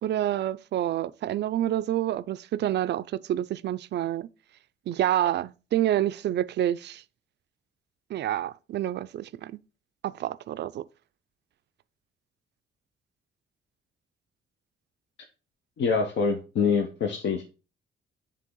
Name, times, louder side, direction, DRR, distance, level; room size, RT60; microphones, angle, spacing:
voice 1, 0.0-4.3 4.9-7.0 8.1-9.5 10.0-10.8, right 12 dB, 60° right, 0.4 m, -28 dB
voice 2, 15.8-17.5, left 5 dB, 65° left, 0.9 m, -25 dB
7.4 x 3.4 x 3.8 m
cardioid pair, 90°, 20 cm